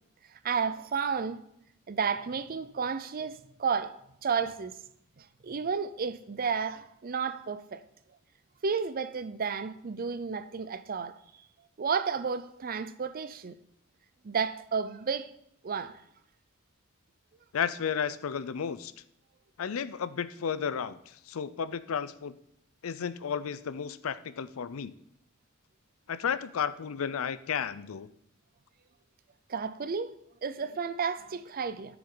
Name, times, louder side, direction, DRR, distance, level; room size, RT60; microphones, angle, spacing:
voice 1, 0.4-1.4 1.9-3.9 4.2-4.7 5.2-7.8 8.6-11.1 11.8-13.6 14.2-15.3 15.6-16.0 29.5-30.1 30.4-32.0, right 5 dB, 45° right, 0.5 m, -32 dB
voice 2, 17.5-18.9 19.6-22.3 22.8-24.9 26.1-28.1, left 7 dB, 75° left, 0.5 m, -33 dB
13.0 x 7.0 x 3.8 m
head